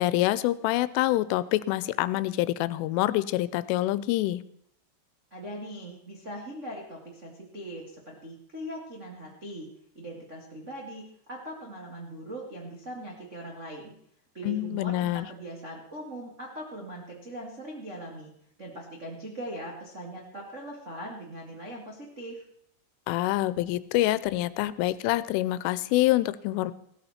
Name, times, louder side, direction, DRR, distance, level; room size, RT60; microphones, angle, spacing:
voice 1, 0.0-4.4 14.4-15.3 23.1-26.7, left 16 dB, 90° left, 16 dB, 3.2 m, -26 dB
voice 2, 5.3-9.7 9.9-11.0 11.3-13.9 14.3-18.3 18.6-22.4, right 1 dB, 65° right, -2 dB, 0.7 m, -40 dB
16.5 x 13.0 x 4.3 m, 0.71 s
omnidirectional pair, 5.5 m